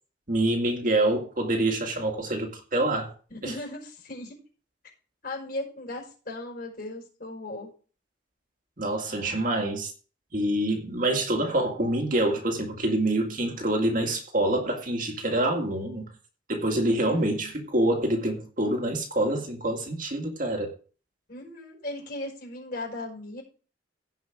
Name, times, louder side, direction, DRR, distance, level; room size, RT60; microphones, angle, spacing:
voice 1, 0.3-3.1 3.4-3.5 8.8-9.9 10.3-16.1 16.5-20.7, right 1 dB, 45° right, 2.1 m, -26 dB
voice 2, 3.3-4.4 5.2-7.7 17.0-17.3 21.3-23.4, left 2 dB, 50° left, 5.4 m, -37 dB
16.0 x 5.5 x 5.0 m
head